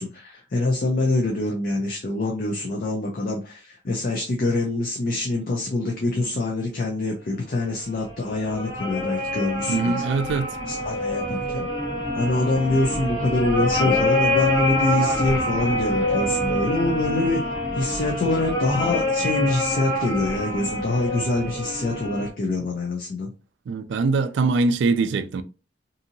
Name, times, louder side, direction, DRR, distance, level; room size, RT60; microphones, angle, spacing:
voice 1, 0.0-10.0 10.7-11.7 12.2-17.4 17.7-23.3, left 2 dB, 55° left, 0.5 m, -25 dB
sound 1, 7.9-22.3, left 1 dB, 30° left, 1.1 m, -26 dB
voice 2, 9.7-10.6 23.7-25.4, right 4 dB, 75° right, 0.3 m, -22 dB
2.7 x 2.7 x 2.6 m
head